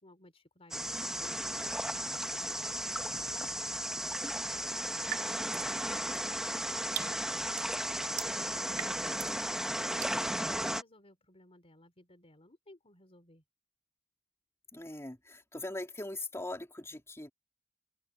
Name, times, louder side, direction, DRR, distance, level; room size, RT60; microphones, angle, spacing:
voice 1, 0.0-4.8 5.6-7.8 8.0-13.4, left 1 dB, 30° left, 3.9 m, -59 dB
sound 1, 0.7-10.8, right 1 dB, 5° right, 1.5 m, -35 dB
sound 2, 5.1-5.7 6.1-9.4 10.0-10.2, right 10 dB, 60° right, 4.1 m, -42 dB
voice 2, 14.7-17.3, left 2 dB, 15° left, 3.8 m, -41 dB
head